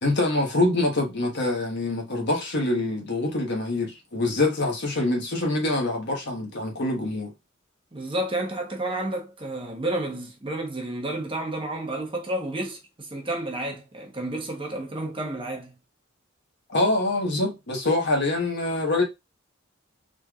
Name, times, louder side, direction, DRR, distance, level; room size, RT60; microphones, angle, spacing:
voice 1, 0.0-7.3 16.7-19.0, left 2 dB, 55° left, 1.3 m, -25 dB
voice 2, 7.9-15.7, right 1 dB, 25° right, 1.0 m, -31 dB
4.2 x 3.3 x 2.4 m
head